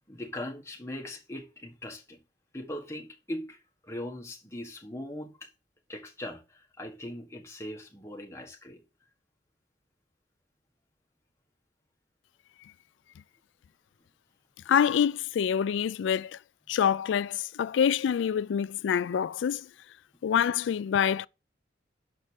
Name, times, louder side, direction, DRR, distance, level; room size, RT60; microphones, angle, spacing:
voice 1, 0.1-2.2 2.5-5.5 5.9-8.8, left 1 dB, 15° left, 1.4 m, -40 dB
voice 2, 14.7-16.4 16.7-19.6 20.2-21.3, left 8 dB, 85° left, 0.3 m, -26 dB
6.6 x 5.2 x 6.3 m
head